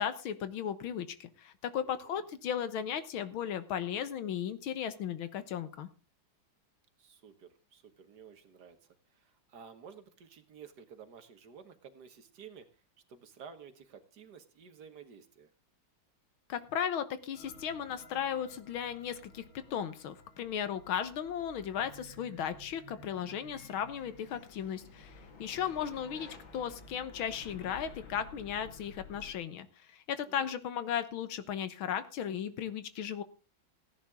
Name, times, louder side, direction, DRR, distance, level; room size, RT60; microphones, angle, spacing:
voice 1, 0.0-5.9 16.5-19.4 19.7-25.1 25.4-29.7 29.9-33.2, left 8 dB, 90° left, 12 dB, 2.0 m, -36 dB
voice 2, 1.8-2.3 7.0-8.8 9.1-12.7 13.1-15.5 25.5-25.7 30.3-30.5, right 6 dB, 55° right, 9 dB, 1.8 m, -53 dB
sound 1, 17.3-29.3, left 3 dB, 75° left, 2.8 m, -53 dB
16.0 x 10.5 x 3.6 m, 0.33 s
omnidirectional pair, 2.2 m